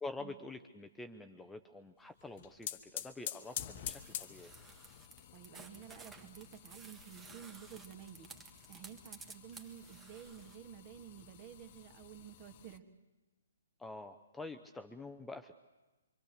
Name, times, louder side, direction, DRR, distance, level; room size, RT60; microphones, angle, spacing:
voice 1, 0.0-4.5 13.8-15.6, left 3 dB, 5° left, 7 dB, 0.8 m, -47 dB
sound 1, 2.2-12.8, left 11 dB, 40° left, 1.2 m, -49 dB
sound 2, 3.9-10.6, right 4 dB, 10° right, 1.7 m, -55 dB
voice 2, 5.3-8.3 8.7-12.8, right 9 dB, 30° right, 8 dB, 2.1 m, -52 dB
25.5 x 25.0 x 6.8 m, 1.1 s
figure-of-eight pair, 130°, 0 cm